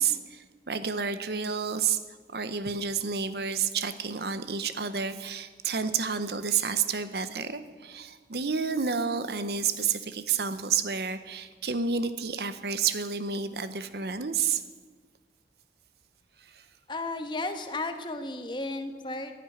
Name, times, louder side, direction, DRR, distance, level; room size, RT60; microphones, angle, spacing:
voice 1, 0.0-2.0 2.3-14.6 16.4-16.6, right 6 dB, 65° right, 11 dB, 0.8 m, -30 dB
voice 2, 16.9-19.3, left 2 dB, 25° left, 7 dB, 1.2 m, -34 dB
12.0 x 10.5 x 10.0 m, 1.4 s
head